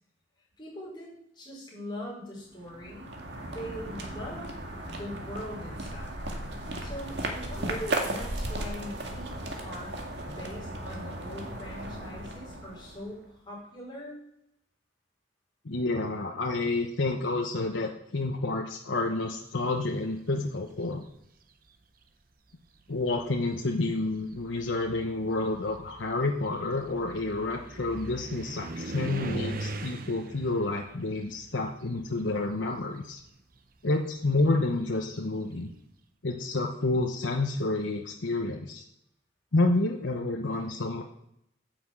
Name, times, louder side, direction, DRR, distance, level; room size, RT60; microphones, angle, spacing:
voice 1, 0.6-3.1 3.4-4.5 4.9-6.2 6.8-9.9 10.2-14.2, equal, 25° left, -5 dB, 5.1 m, -41 dB
sound 1, 2.5-13.3, right 1 dB, 65° right, 2.0 m, -36 dB
voice 2, 15.6-21.1 22.9-33.2 33.8-35.7 36.2-38.8 39.5-41.0, left 2 dB, 90° left, 1 dB, 1.0 m, -29 dB
sound 2, 20.5-21.1 22.1-22.2 22.7-32.6 32.9-35.6, right 2 dB, 50° right, 0.8 m, -41 dB
10.0 x 6.1 x 7.5 m, 0.79 s
head